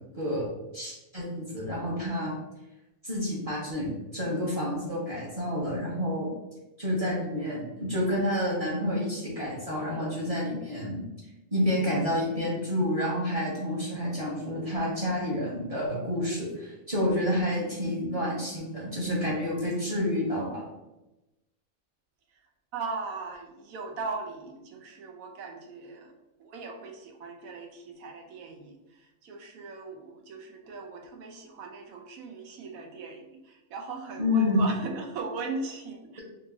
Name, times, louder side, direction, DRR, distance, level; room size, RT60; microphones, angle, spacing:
voice 1, 0.1-0.5 0.7-2.4 3.0-6.3 6.8-11.0 11.5-20.7 34.2-34.6, left 1 dB, 30° right, -6 dB, 0.9 m, -29 dB
voice 2, 22.7-26.1 26.4-36.2, right 4 dB, 90° right, 3 dB, 1.1 m, -39 dB
2.9 x 2.7 x 3.5 m, 0.97 s
omnidirectional pair, 1.4 m